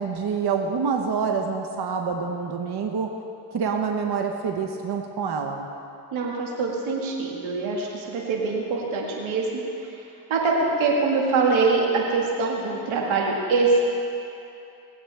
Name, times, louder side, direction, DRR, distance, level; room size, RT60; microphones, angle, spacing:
voice 1, 0.0-3.1 3.5-5.7, right 5 dB, 55° right, 3 dB, 1.2 m, -26 dB
voice 2, 6.1-10.0 10.3-13.9, right 3 dB, 90° right, -2 dB, 2.0 m, -24 dB
20.5 x 8.5 x 3.5 m, 2.7 s
supercardioid pair, 55°, 46 cm